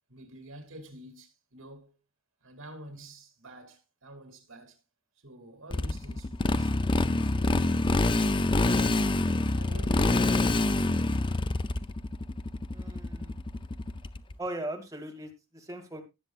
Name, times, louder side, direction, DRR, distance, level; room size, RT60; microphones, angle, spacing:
voice 1, 0.1-2.0 2.4-4.8 5.2-6.7 7.3-9.0 9.4-11.1, right 1 dB, 75° right, 2.8 m, -48 dB
Motorcycle, 5.7-14.3, left 2 dB, 25° left, 0.5 m, -26 dB
voice 2, 12.7-13.4 14.4-16.0, right 1 dB, 15° right, 2.2 m, -39 dB
18.0 x 7.2 x 2.4 m
head